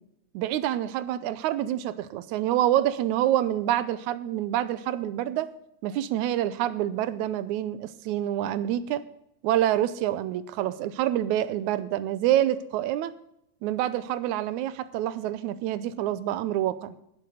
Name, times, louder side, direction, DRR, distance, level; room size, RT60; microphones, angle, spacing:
voice 1, 0.3-5.5 5.8-9.0 9.4-13.1 13.6-16.9, right 12 dB, 80° right, 15 dB, 2.0 m, -27 dB
11.5 x 7.6 x 6.5 m, 0.78 s
omnidirectional pair, 3.5 m